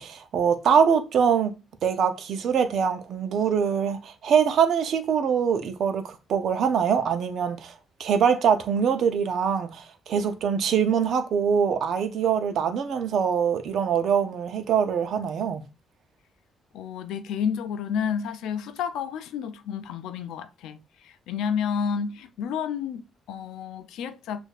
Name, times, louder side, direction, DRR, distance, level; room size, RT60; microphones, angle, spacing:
voice 1, 0.0-1.5 1.8-7.7 8.0-15.6, right 7 dB, 70° right, 0.6 m, -23 dB
voice 2, 16.7-24.4, left 7 dB, 85° left, 0.4 m, -30 dB
6.3 x 2.6 x 2.4 m
cardioid pair, 90°, 0 cm